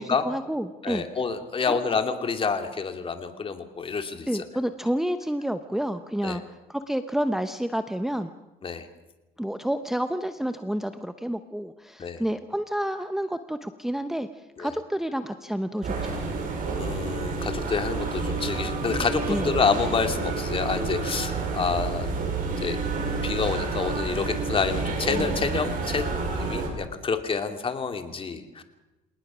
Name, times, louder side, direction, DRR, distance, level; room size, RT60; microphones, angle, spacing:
voice 1, 0.2-1.1 1.7-1.8 4.3-6.4 6.7-8.3 9.4-14.3 14.6-16.3 19.3-19.6, equal, ahead, 9 dB, 0.9 m, -29 dB
voice 2, 0.8-4.5 6.2-6.4 8.6-8.9 12.0-12.2 14.6-14.7 16.8-22.1 22.6-22.8 23.2-28.6, left 5 dB, 30° left, 6 dB, 2.6 m, -28 dB
sound 1, 15.8-26.7, right 4 dB, 55° right, 6.4 m, -29 dB
27.5 x 19.0 x 6.3 m, 1.0 s
cardioid pair, 110°, 17 cm